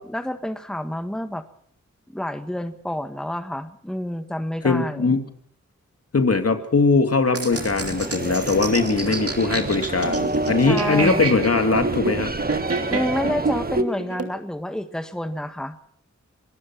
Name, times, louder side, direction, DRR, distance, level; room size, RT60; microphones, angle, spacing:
voice 1, 0.0-1.4 2.1-5.1 10.6-11.3 12.9-15.8, left 1 dB, ahead, 10 dB, 1.6 m, -29 dB
voice 2, 4.6-5.2 6.1-12.3, left 4 dB, 55° left, 8 dB, 2.7 m, -21 dB
sound 1, 7.3-14.3, right 3 dB, 50° right, 3.2 m, -28 dB
sound 2, 7.5-13.8, right 2 dB, 30° right, 1.7 m, -29 dB
26.0 x 17.5 x 6.1 m, 0.63 s
cardioid pair, 55°, 29 cm